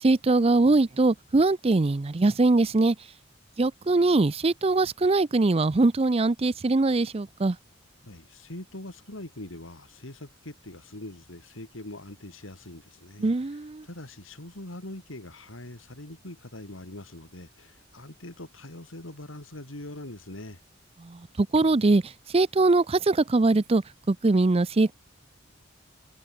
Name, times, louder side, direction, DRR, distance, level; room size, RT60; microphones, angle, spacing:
voice 1, 0.0-3.0 3.6-7.6 13.2-13.8 21.4-22.0 22.3-23.8 24.1-24.9, right 3 dB, 30° right, 0.5 m, -22 dB
voice 2, 8.0-20.6, left 1 dB, 85° left, 3.3 m, -43 dB
head